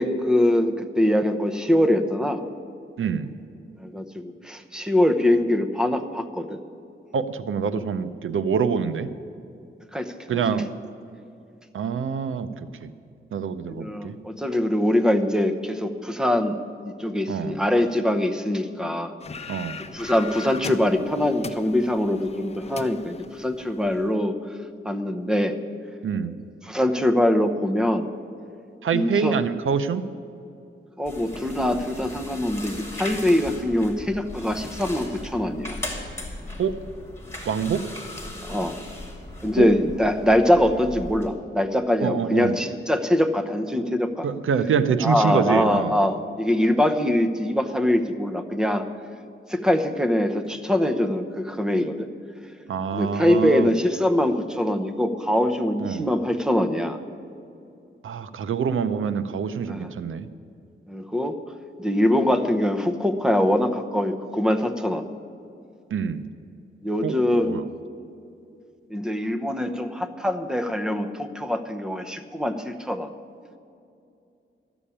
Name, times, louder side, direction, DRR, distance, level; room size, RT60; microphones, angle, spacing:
voice 1, 0.0-2.5 3.8-6.6 9.9-10.4 13.7-16.6 16.8-19.1 19.8-24.4 24.8-25.6 26.6-28.1 28.9-29.3 31.0-35.8 38.4-38.8 39.4-44.3 45.0-48.8 49.5-52.1 52.9-57.0 59.7-59.9 60.9-61.4 61.8-65.0 66.8-67.6 68.9-73.1, left 1 dB, 5° right, 7 dB, 0.8 m, -23 dB
voice 2, 3.0-3.3 7.1-9.1 10.3-10.7 11.7-12.9 13.3-14.2 17.3-17.6 19.5-19.8 26.0-26.4 28.8-30.0 36.6-36.8 37.5-37.8 39.6-39.7 42.0-42.6 44.2-45.9 52.7-53.7 55.8-56.1 58.0-60.3 65.9-66.2 67.0-67.2 67.5-67.7, right 6 dB, 85° right, 13 dB, 0.6 m, -25 dB
sound 1, 19.2-24.1, left 4 dB, 30° left, 0.6 m, -39 dB
sound 2, 31.1-41.3, left 1 dB, 10° left, 2.5 m, -38 dB
13.0 x 7.1 x 9.9 m, 2.6 s
wide cardioid pair, 105°, 20 cm